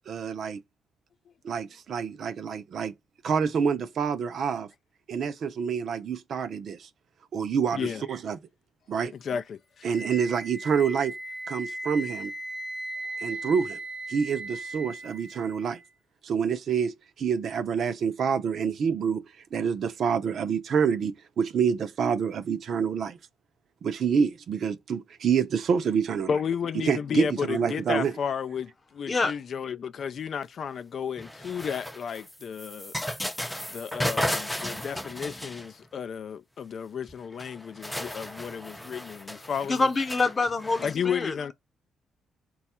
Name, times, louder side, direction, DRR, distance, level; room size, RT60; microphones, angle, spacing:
voice 1, 0.1-0.6 1.4-2.9 3.2-4.7 5.1-6.9 7.3-8.4 8.9-9.1 9.8-11.1 11.5-12.3 13.2-13.8 14.1-15.8 16.2-19.2 19.5-23.2 23.8-26.3 26.8-28.1, right 6 dB, 60° right, 0.5 m, -27 dB
voice 2, 7.7-8.0 9.2-9.9 26.3-33.0 33.7-39.9 40.8-41.5, left 7 dB, 55° left, 0.3 m, -33 dB
Wind instrument woodwind instrument, 9.9-15.9, right 2 dB, 90° left, 0.9 m, -37 dB
sound 1, 31.2-36.0 37.1-37.2 37.4-40.9, left 1 dB, 5° left, 0.5 m, -34 dB
voice 3, 39.6-41.5, left 3 dB, 30° left, 0.8 m, -26 dB
4.1 x 2.3 x 4.2 m
cardioid pair, 90°, 0 cm